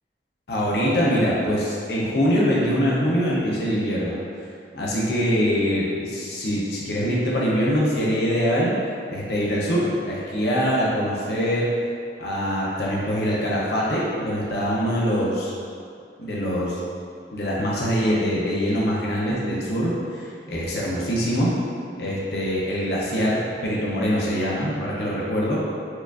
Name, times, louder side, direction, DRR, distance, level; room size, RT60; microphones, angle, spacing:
voice 1, 0.5-4.2 4.7-8.7 9.1-11.7 12.2-15.5 16.2-16.8 17.3-21.5 22.0-25.6, equal, 65° left, -6 dB, 0.6 m, -23 dB
4.6 x 2.4 x 2.3 m, 2.4 s
head